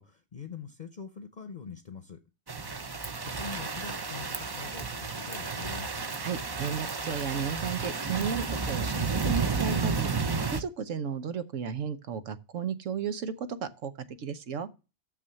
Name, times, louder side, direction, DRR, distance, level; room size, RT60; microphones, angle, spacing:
voice 1, 0.0-2.2 3.4-5.9, left 5 dB, 40° left, 0.8 m, -44 dB
sound 1, 2.5-10.6, right 4 dB, 30° right, 0.5 m, -32 dB
voice 2, 6.2-10.1 10.5-13.9 14.2-14.7, right 7 dB, 85° right, 1.3 m, -34 dB
6.8 x 6.2 x 6.8 m
omnidirectional pair, 1.3 m